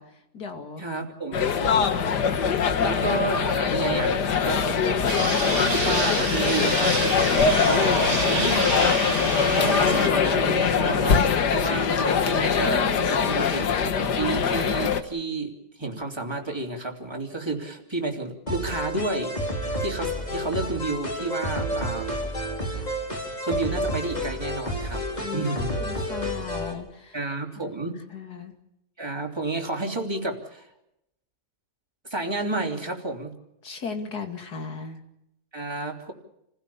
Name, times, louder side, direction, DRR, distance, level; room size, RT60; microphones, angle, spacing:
voice 1, 0.0-0.8 2.7-3.0 25.2-27.2 27.6-28.5 33.6-35.0, left 5 dB, 70° left, 5 dB, 3.1 m, -37 dB
voice 2, 0.8-1.4 2.8-5.0 5.5-9.0 9.6-15.5 15.8-22.1 23.4-25.0 25.3-25.8 27.1-28.0 29.0-30.7 32.1-33.3 35.5-36.1, right 2 dB, 15° right, 1 dB, 3.1 m, -31 dB
sound 1, 1.3-15.0, left 6 dB, 90° left, 2.0 m, -23 dB
sound 2, 5.1-10.1, right 3 dB, 35° right, 2.3 m, -28 dB
sound 3, 18.5-26.7, equal, 25° left, 4.5 m, -30 dB
29.0 x 16.0 x 7.0 m, 0.83 s
omnidirectional pair, 1.7 m